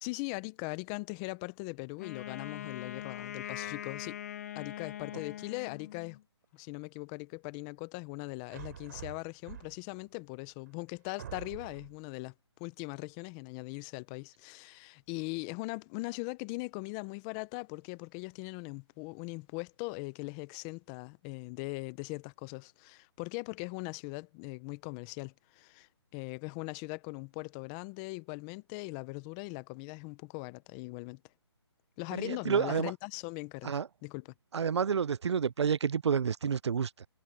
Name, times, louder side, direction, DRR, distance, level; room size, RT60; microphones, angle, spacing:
voice 1, 0.0-4.2 4.5-6.2 6.5-12.3 12.6-31.2 32.0-34.3, left 26 dB, 15° left, 0.6 m, -40 dB
Wind instrument woodwind instrument, 2.0-6.2, left 11 dB, 35° left, 1.5 m, -42 dB
sound 1, 8.5-10.0 10.7-10.8 11.2-12.0, right 10 dB, 40° right, 3.5 m, -46 dB
voice 2, 32.1-32.9 33.6-33.9 34.5-37.1, right 7 dB, 70° right, 0.5 m, -29 dB
hypercardioid pair, 160°, 15 cm